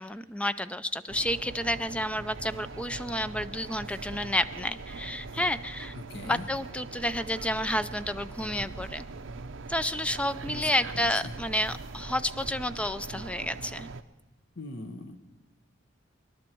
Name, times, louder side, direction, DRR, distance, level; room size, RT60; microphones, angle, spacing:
voice 1, 0.0-6.0 6.2-9.0 9.7-13.9, left 1 dB, 5° left, 13 dB, 0.4 m, -30 dB
sound 1, 1.1-14.0, right 3 dB, 65° right, 0.7 m, -41 dB
voice 2, 5.9-6.4 10.5-10.7 10.9-11.3 14.5-15.2, left 2 dB, 60° left, 7 dB, 1.3 m, -40 dB
25.0 x 11.5 x 4.5 m, 1.2 s
head